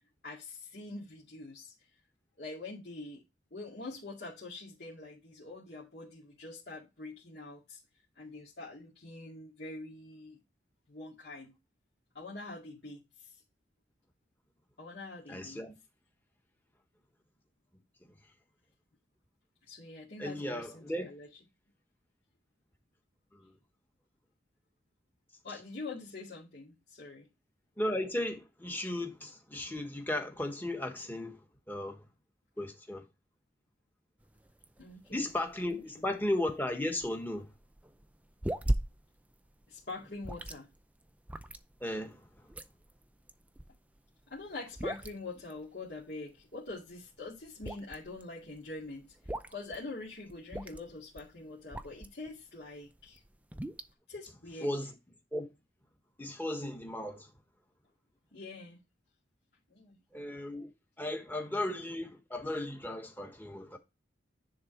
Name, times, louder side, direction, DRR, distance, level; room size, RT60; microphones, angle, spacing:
voice 1, 0.2-1.7 2.4-3.2 3.5-7.8 8.2-10.4 10.9-11.5 12.1-13.4 14.8-15.6 19.7-21.3 25.4-27.3 34.8-35.3 35.7-36.0 39.7-40.7 44.3-53.2 54.1-54.7 58.3-58.8 59.7-60.3, left 3 dB, 60° left, 2.2 m, -45 dB
voice 2, 15.3-15.7 18.1-18.2 20.2-21.1 23.3-23.5 27.8-31.4 31.7-32.0 32.6-33.0 35.1-37.5 41.8-42.5 54.6-54.9 55.3-55.4 56.2-57.3 60.1-60.7 61.0-63.8, left 1 dB, 10° left, 1.3 m, -35 dB
sound 1, 34.2-52.3 52.8-53.9, right 1 dB, 10° right, 0.5 m, -40 dB
10.0 x 3.7 x 4.4 m
head